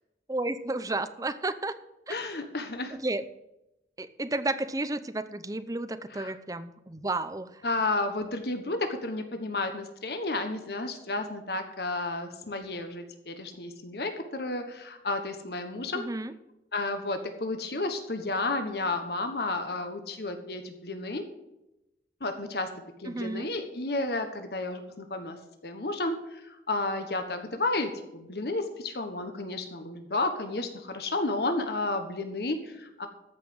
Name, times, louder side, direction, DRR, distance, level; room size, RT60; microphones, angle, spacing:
voice 1, 0.3-1.7 2.1-2.2 3.0-3.2 4.0-7.6 15.9-16.3 23.1-23.5, right 2 dB, 20° right, 11 dB, 0.6 m, -32 dB
voice 2, 2.1-3.0 6.1-6.3 7.6-16.1 16.7-21.2 22.2-22.7 23.0-25.4 25.6-33.1, left 2 dB, 65° left, 7 dB, 1.3 m, -32 dB
14.0 x 5.7 x 7.9 m, 0.90 s
head